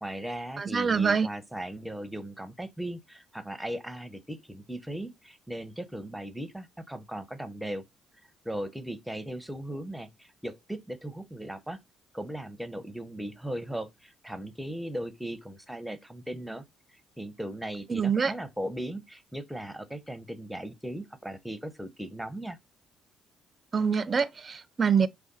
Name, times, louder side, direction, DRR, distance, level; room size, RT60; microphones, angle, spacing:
voice 1, 0.0-7.8 8.4-11.8 12.1-16.6 17.2-22.6, right 1 dB, 5° right, 0.7 m, -37 dB
voice 2, 0.6-1.3 17.9-18.3 23.7-25.1, right 6 dB, 35° right, 0.4 m, -25 dB
4.9 x 2.3 x 4.0 m
supercardioid pair, 65°, 0 cm